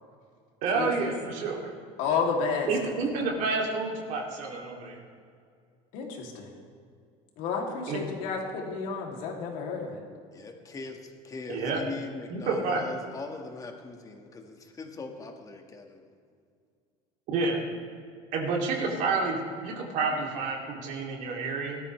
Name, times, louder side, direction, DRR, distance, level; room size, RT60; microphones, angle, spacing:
voice 1, 0.6-1.7 2.7-5.0 7.9-8.1 11.5-11.8 12.3-12.8 17.3-17.6 18.3-21.8, right 4 dB, 65° right, -1 dB, 2.8 m, -29 dB
voice 2, 2.0-2.9 5.9-6.5 7.4-10.0, left 5 dB, 70° left, 0 dB, 2.8 m, -31 dB
voice 3, 10.3-16.1, left 3 dB, 25° left, 4 dB, 1.6 m, -40 dB
19.5 x 13.0 x 3.3 m, 2.2 s
cardioid pair, 130°, 14 cm